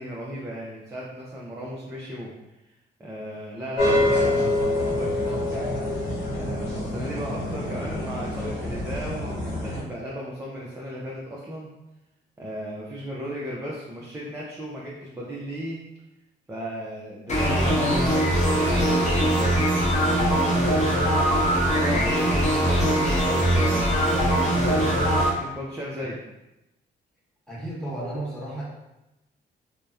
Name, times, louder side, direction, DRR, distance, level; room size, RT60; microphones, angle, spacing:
voice 1, 0.0-2.3 3.0-5.7 6.3-11.7 12.4-15.8 16.5-20.9 21.7-25.0 25.4-26.2, equal, 15° right, -5 dB, 0.4 m, -35 dB
sound 1, 3.8-9.8, left 1 dB, 70° left, 0.9 m, -26 dB
sound 2, 17.3-25.3, right 1 dB, 35° left, 0.7 m, -21 dB
voice 2, 27.5-28.6, right 1 dB, 5° left, -8 dB, 1.3 m, -33 dB
2.7 x 2.1 x 2.3 m, 0.94 s
cardioid pair, 90°, 20 cm